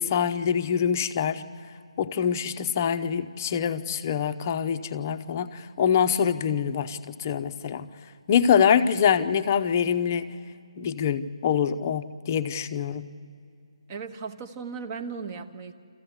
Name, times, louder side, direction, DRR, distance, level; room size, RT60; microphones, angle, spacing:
voice 1, 0.0-1.4 2.0-7.9 8.3-10.4 10.8-13.0, left 8 dB, 25° left, 9 dB, 0.7 m, -25 dB
voice 2, 13.9-15.7, right 5 dB, 20° right, 8 dB, 0.9 m, -36 dB
27.5 x 15.0 x 8.0 m, 2.4 s
figure-of-eight pair, 160°, 3 cm